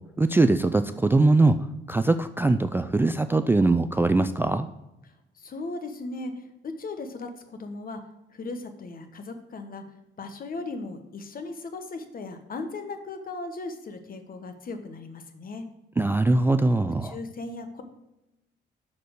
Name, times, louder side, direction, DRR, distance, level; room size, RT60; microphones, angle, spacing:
voice 1, 0.2-1.6 1.9-4.7 16.0-17.2, right 2 dB, 10° right, 9 dB, 0.3 m, -21 dB
voice 2, 5.4-8.0 8.3-9.8 10.2-15.6 17.0-17.8, left 3 dB, 45° left, 7 dB, 1.1 m, -37 dB
6.7 x 4.3 x 6.2 m, 0.95 s
cardioid pair, 90°, 20 cm